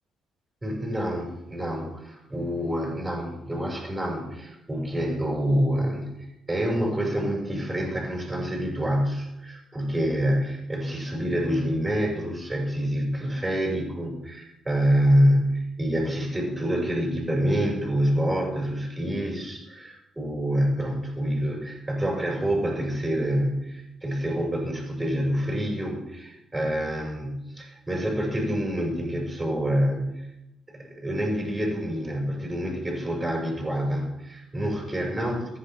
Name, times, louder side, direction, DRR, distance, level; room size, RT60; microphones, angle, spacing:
voice 1, 0.6-30.3 30.7-35.6, equal, 15° right, -1 dB, 5.7 m, -27 dB
14.5 x 10.0 x 5.8 m, 0.88 s
cardioid pair, 90°, 0 cm